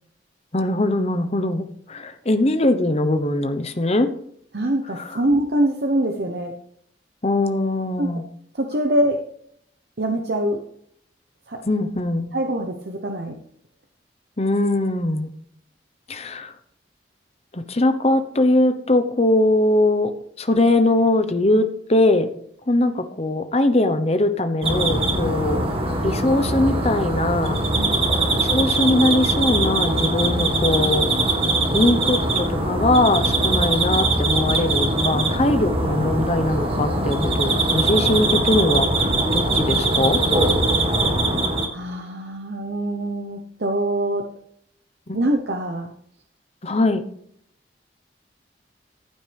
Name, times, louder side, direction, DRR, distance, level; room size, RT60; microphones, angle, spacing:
voice 1, 0.5-4.1 5.0-5.2 7.2-8.2 11.6-12.3 14.4-15.3 16.1-16.5 17.5-20.1 20.4-22.3 22.7-25.7 26.0-27.6 28.4-31.4 31.7-40.2 45.1-45.2 46.6-47.0, left 2 dB, 35° left, 9 dB, 1.0 m, -21 dB
voice 2, 4.5-6.5 8.0-8.1 8.5-9.2 10.0-10.6 11.5-11.6 12.3-13.3 27.8-28.0 41.7-44.3 45.1-45.9, right 1 dB, 65° right, 3 dB, 1.0 m, -24 dB
sound 1, 24.6-41.7, right 2 dB, 30° right, 1.8 m, -21 dB
15.0 x 8.8 x 3.5 m, 0.67 s
head